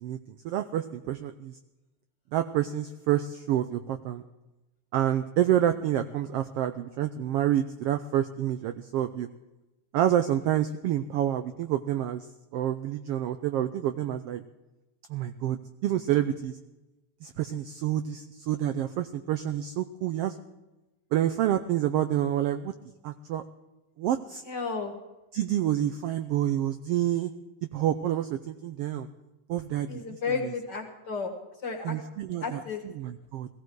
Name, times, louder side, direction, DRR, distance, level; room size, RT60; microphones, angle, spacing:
voice 1, 0.4-1.6 2.3-4.2 4.9-9.3 9.9-12.2 12.5-14.4 15.1-16.6 17.2-20.4 21.1-22.7 23.0-23.4 24.0-24.4 25.3-27.3 27.7-29.1 29.5-30.5 31.8-33.5, right 11 dB, 85° right, 10 dB, 1.3 m, -28 dB
voice 2, 24.5-24.9 29.9-31.3 31.6-31.9 32.4-32.8, left 5 dB, 40° left, 2 dB, 2.0 m, -32 dB
17.5 x 16.0 x 4.7 m, 1.0 s
omnidirectional pair, 3.4 m